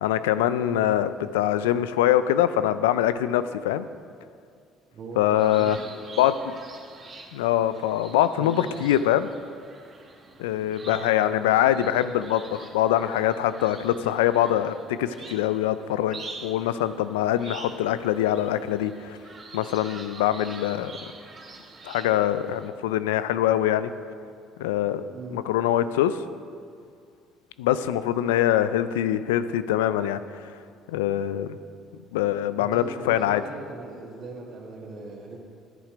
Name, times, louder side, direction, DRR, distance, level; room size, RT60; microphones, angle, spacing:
voice 1, 0.0-3.9 5.2-5.8 6.2-6.5 7.3-9.3 10.4-19.2 19.5-20.9 21.8-23.9 24.6-25.0 25.3-26.2 27.6-30.2 30.9-31.6 32.1-33.4, left 12 dB, 90° left, 13 dB, 0.3 m, -23 dB
voice 2, 4.9-5.8 8.4-8.7 10.9-11.5 25.1-25.4 32.6-35.4, right 3 dB, 55° right, -2 dB, 1.8 m, -39 dB
sound 1, 5.4-22.7, right 3 dB, 40° right, 1.4 m, -45 dB
10.5 x 8.2 x 5.0 m, 2.2 s
hypercardioid pair, 65°, 0 cm